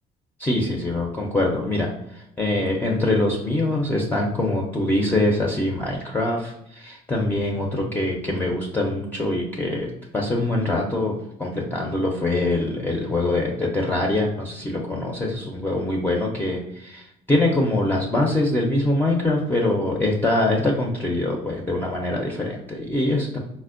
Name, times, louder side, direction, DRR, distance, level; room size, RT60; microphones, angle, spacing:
voice 1, 0.4-23.4, left 2 dB, 10° left, -1 dB, 0.4 m, -24 dB
4.2 x 2.1 x 2.4 m, 0.81 s
cardioid pair, 110°, 17 cm